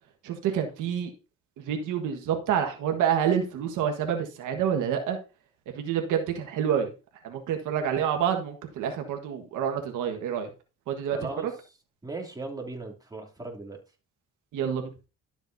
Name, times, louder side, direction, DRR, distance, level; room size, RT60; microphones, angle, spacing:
voice 1, 0.2-1.1 1.7-5.2 5.7-6.9 7.2-10.5 10.9-11.2 14.5-14.9, right 8 dB, 85° right, 4 dB, 1.6 m, -28 dB
voice 2, 11.1-11.5 12.0-13.8, right 3 dB, 15° right, 0 dB, 2.8 m, -37 dB
12.5 x 7.1 x 2.7 m, 0.31 s
cardioid pair, 90°, 30 cm